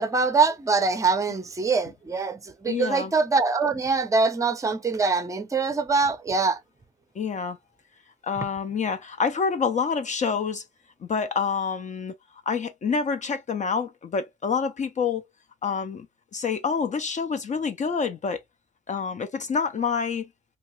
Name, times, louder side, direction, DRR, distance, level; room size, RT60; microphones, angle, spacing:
voice 1, 0.0-6.6, right 4 dB, 15° right, 0.5 m, -24 dB
voice 2, 2.7-3.1 7.2-7.6 8.2-10.6 11.0-12.1 12.5-15.2 15.6-16.1 16.3-18.4 18.9-20.3, left 5 dB, 40° left, 0.5 m, -27 dB
2.8 x 2.3 x 2.9 m
cardioid pair, 95°, 20 cm